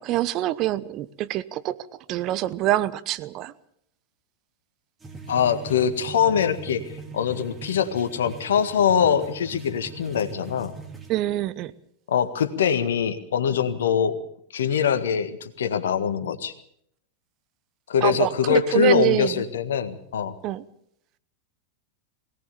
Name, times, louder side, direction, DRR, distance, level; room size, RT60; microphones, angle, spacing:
voice 1, 0.0-1.8 2.1-3.5 11.1-11.7 18.0-19.4 20.4-20.6, right 14 dB, 35° right, 15 dB, 0.9 m, -25 dB
sound 1, 5.0-11.1, right 5 dB, 20° right, 3.5 m, -41 dB
voice 2, 5.3-6.8 7.1-10.7 12.1-14.2 14.5-16.5 17.9-20.3, left 7 dB, 60° left, 9 dB, 1.7 m, -23 dB
21.5 x 18.0 x 7.0 m, 0.71 s
figure-of-eight pair, 90°, 0 cm